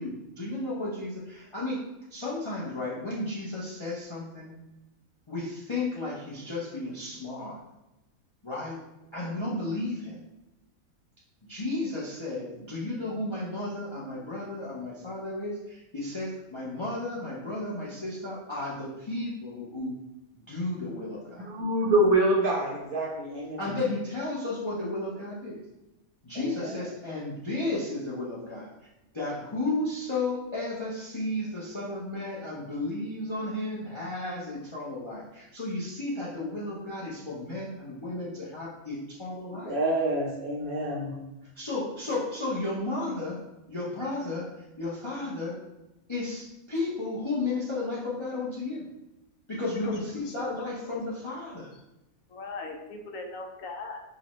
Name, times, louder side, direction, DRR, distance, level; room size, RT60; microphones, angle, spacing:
voice 1, 0.0-1.8 2.1-4.5 5.3-7.6 8.4-8.8 9.1-10.2 11.5-19.9 20.5-21.4 23.5-25.6 26.2-28.7 29.1-39.7 41.6-43.4 43.7-44.5 44.8-45.5 46.1-48.8 49.5-51.7, left 2 dB, 35° left, -7 dB, 0.4 m, -33 dB
voice 2, 21.4-23.7 26.3-26.7 39.6-41.2, right 1 dB, 80° right, -2 dB, 1.4 m, -26 dB
voice 3, 49.8-50.4 50.8-50.9 52.3-54.0, left 3 dB, 75° left, 3 dB, 1.0 m, -38 dB
4.9 x 2.1 x 3.0 m, 0.96 s
omnidirectional pair, 1.5 m